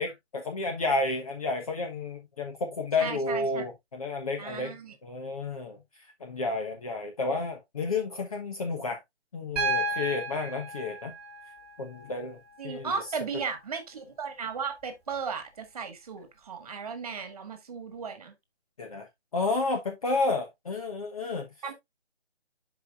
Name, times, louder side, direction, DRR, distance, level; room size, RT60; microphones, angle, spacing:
voice 1, 0.0-4.7 5.0-5.8 6.2-9.0 9.3-11.1 11.8-12.4 12.6-13.0 18.8-19.1 19.3-21.5, left 3 dB, 30° left, 1.2 m, -31 dB
voice 2, 3.0-3.7 4.4-4.9 12.6-18.3 21.6-21.7, right 5 dB, 35° right, 1.7 m, -36 dB
Piano, 9.6-13.6 15.1-15.2, right 2 dB, 5° right, 2.0 m, -34 dB
11.0 x 5.0 x 2.5 m
figure-of-eight pair, 160°, 34 cm